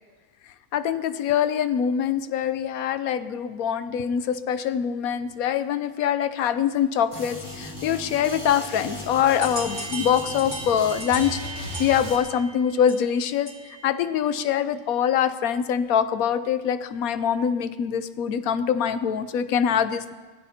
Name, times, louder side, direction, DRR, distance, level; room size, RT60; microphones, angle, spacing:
voice 1, 0.7-11.4 11.8-13.5 13.8-20.1, left 8 dB, 80° left, 12 dB, 1.1 m, -24 dB
sound 1, 7.1-12.2, left 1 dB, 20° left, 3.2 m, -36 dB
sound 2, 9.4-13.9, right 3 dB, 30° right, 2.9 m, -37 dB
22.5 x 16.5 x 2.9 m, 1.4 s
omnidirectional pair, 1.5 m